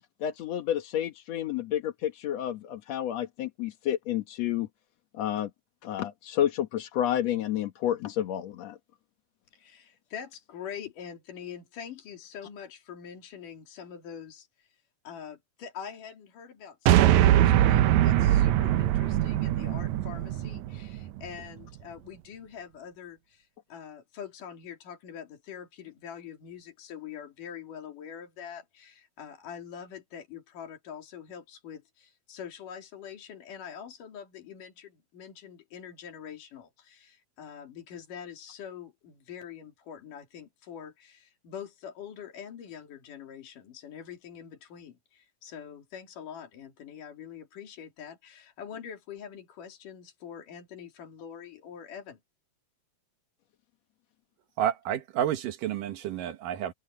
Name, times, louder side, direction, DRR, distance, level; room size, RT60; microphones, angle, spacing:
voice 1, 0.2-4.7 5.1-5.5 5.8-8.8, left 11 dB, 60° left, 2.3 m, -30 dB
voice 2, 9.5-14.7 15.0-52.2, left 8 dB, 80° left, 4.3 m, -44 dB
sound 1, 16.9-21.3, right 13 dB, 75° right, 1.9 m, -22 dB
voice 3, 54.6-56.7, right 10 dB, 90° right, 3.0 m, -30 dB
omnidirectional pair, 3.7 m